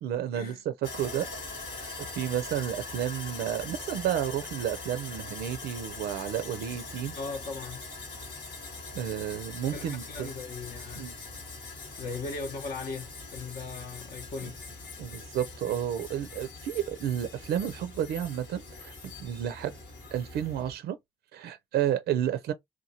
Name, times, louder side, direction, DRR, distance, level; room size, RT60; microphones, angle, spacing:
voice 1, 0.0-1.3 1.7-1.9 2.2-7.2 8.9-10.3 11.0-11.1 15.0-19.7 20.1-21.0 21.3-22.5, right 10 dB, 70° right, 0.4 m, -31 dB
Sawing, 0.8-20.7, left 3 dB, 80° left, 1.2 m, -42 dB
voice 2, 7.2-7.8 9.7-11.1 12.0-14.8, left 4 dB, 60° left, 0.8 m, -38 dB
2.9 x 2.2 x 2.6 m
hypercardioid pair, 50°, 17 cm